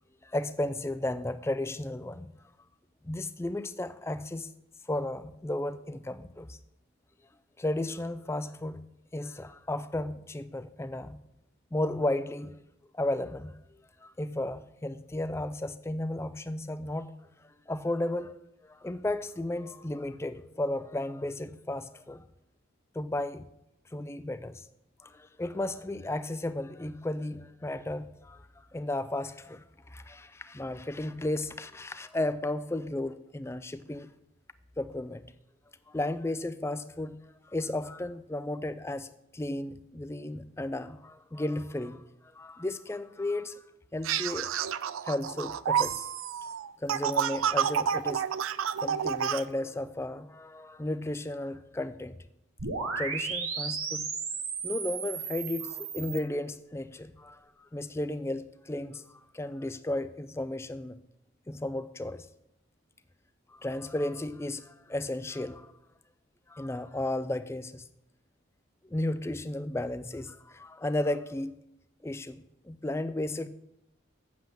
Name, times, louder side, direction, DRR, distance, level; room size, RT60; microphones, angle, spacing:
voice 1, 0.2-2.4 3.0-4.5 4.9-6.6 7.6-8.9 9.1-11.2 11.7-12.6 12.9-13.6 14.0-17.1 17.7-18.3 18.6-22.2 22.9-23.5 23.9-24.7 25.0-34.1 34.8-35.2 35.9-37.2 37.4-42.1 42.3-43.6 43.9-44.7 45.0-46.1 46.8-48.2 48.8-52.1 53.0-54.1 54.6-61.0 61.5-62.3 63.5-65.7 66.5-67.8 68.8-71.5 72.0-73.5, left 1 dB, 10° left, 0.4 m, -34 dB
sound 1, 44.0-49.4, right 8 dB, 70° right, 0.4 m, -29 dB
sound 2, 52.6-56.2, right 5 dB, 90° right, 1.7 m, -34 dB
7.7 x 7.4 x 7.3 m
head